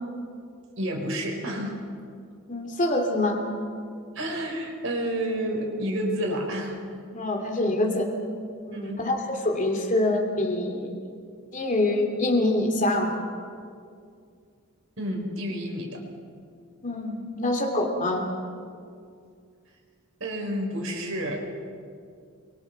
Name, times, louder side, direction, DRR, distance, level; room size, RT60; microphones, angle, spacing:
voice 1, 0.8-1.8 4.1-6.8 8.7-9.1 15.0-16.0 20.2-21.4, equal, 65° right, 1 dB, 4.6 m, -30 dB
voice 2, 2.5-3.4 7.1-8.1 8.7-10.9 11.5-13.2 16.8-18.3, left 1 dB, 35° left, 3 dB, 2.7 m, -25 dB
28.5 x 24.0 x 4.6 m, 2.3 s
head